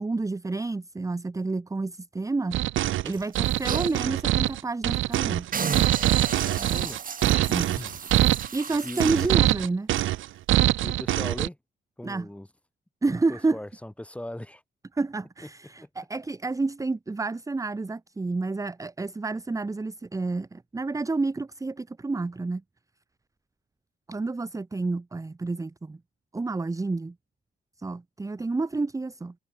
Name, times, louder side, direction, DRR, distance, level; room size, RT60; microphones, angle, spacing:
voice 1, 0.0-2.6 3.0-5.5 7.5-7.8 8.5-9.9 12.0-12.3 13.0-13.6 14.9-22.6 24.1-26.0 26.3-27.1 27.8-29.3, right 3 dB, 15° right, 1.0 m, -29 dB
sound 1, 2.5-11.5, right 14 dB, 80° right, 0.9 m, -24 dB
sound 2, 3.1-4.0 4.5-4.6 4.9-5.2 5.5-9.4 10.0-10.1, right 6 dB, 45° right, 3.1 m, -34 dB
voice 2, 6.5-7.0 7.8-8.0 8.8-9.3 10.8-11.6 12.0-12.5 13.1-14.6 15.8-15.9, left 1 dB, 5° left, 3.2 m, -38 dB
cardioid pair, 90°, 20 cm